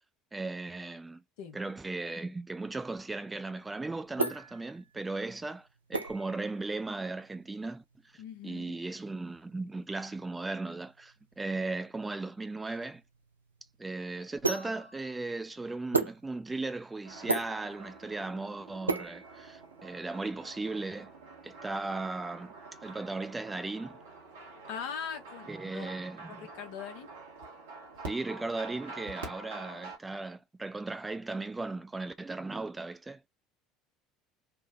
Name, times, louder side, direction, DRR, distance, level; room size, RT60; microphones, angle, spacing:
voice 1, 0.3-1.2 1.5-7.8 8.1-13.0 13.8-21.1 21.4-22.5 22.8-24.0 25.5-26.5 28.1-33.2, right 3 dB, 15° right, 0.4 m, -37 dB
sound 1, 3.6-20.0, right 3 dB, 90° right, 0.3 m, -37 dB
voice 2, 8.2-8.8 24.7-25.9 26.3-27.1, left 7 dB, 65° left, 0.8 m, -41 dB
sound 2, 17.0-30.0, right 3 dB, 75° right, 1.0 m, -47 dB
3.4 x 2.1 x 2.6 m
figure-of-eight pair, 65°, 0 cm